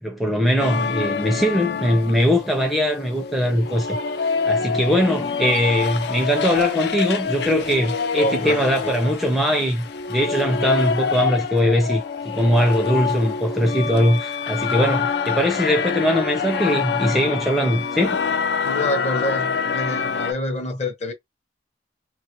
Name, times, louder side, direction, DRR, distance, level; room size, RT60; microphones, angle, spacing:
voice 1, 0.0-4.0 4.4-18.2, equal, ahead, 0.5 m, -21 dB
sound 1, 0.6-20.3, left 5 dB, 65° left, 0.4 m, -26 dB
voice 2, 8.2-9.1 18.6-21.1, left 1 dB, 40° left, 0.8 m, -27 dB
2.5 x 2.4 x 2.9 m
head